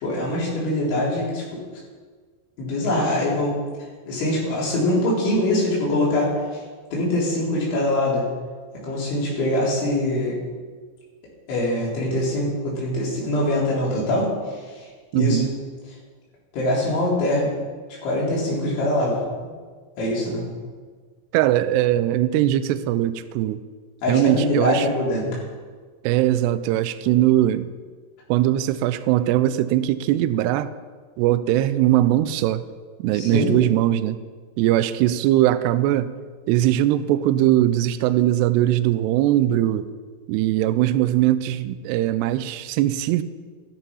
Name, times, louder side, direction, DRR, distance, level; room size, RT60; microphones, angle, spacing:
voice 1, 0.0-1.6 2.6-3.6 4.1-6.3 6.9-8.3 8.8-10.4 11.5-14.3 15.1-15.4 16.5-17.5 18.0-19.2 20.0-20.4 24.0-25.4 26.8-26.9 33.1-33.5, left 1 dB, 80° left, -6 dB, 6.7 m, -23 dB
voice 2, 15.1-15.6 21.3-23.6 24.1-24.9 26.0-27.7 28.3-30.7 31.2-32.6 33.0-34.2 34.6-36.2 36.5-39.9 40.3-43.2, right 13 dB, 90° right, 13 dB, 2.4 m, -20 dB
13.5 x 13.5 x 5.6 m, 1.5 s
omnidirectional pair, 5.4 m